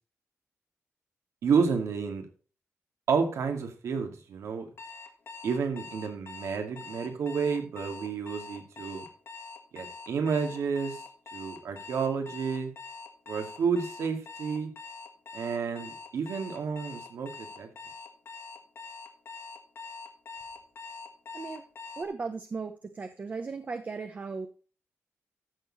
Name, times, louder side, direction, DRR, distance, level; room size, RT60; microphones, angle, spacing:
voice 1, 1.4-2.2 3.1-4.7 5.4-9.0 9.7-11.0 11.3-12.7 13.3-14.7 15.3-17.7, right 5 dB, 75° right, 5 dB, 2.5 m, -30 dB
Alarm, 4.8-22.1, left 4 dB, 55° left, 1.8 m, -44 dB
voice 2, 22.0-24.5, right 4 dB, 30° right, 8 dB, 0.9 m, -36 dB
14.0 x 6.8 x 4.2 m, 0.38 s
wide cardioid pair, 170°, 5 cm